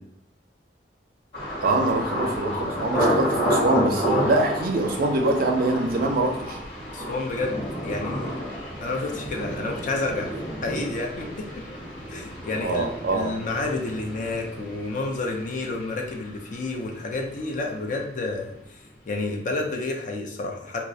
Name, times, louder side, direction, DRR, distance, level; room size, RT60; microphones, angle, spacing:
Thunder, 1.3-17.1 17.3-18.0 18.4-18.7, equal, 70° left, 1.4 m, -30 dB
voice 1, 1.6-6.6 12.6-13.3, right 2 dB, 55° right, 3 dB, 0.4 m, -24 dB
voice 2, 6.9-8.4 8.8-10.3 10.6-11.6 12.1-20.8, left 2 dB, 45° left, 2 dB, 0.4 m, -30 dB
2.3 x 2.0 x 2.6 m, 0.72 s
head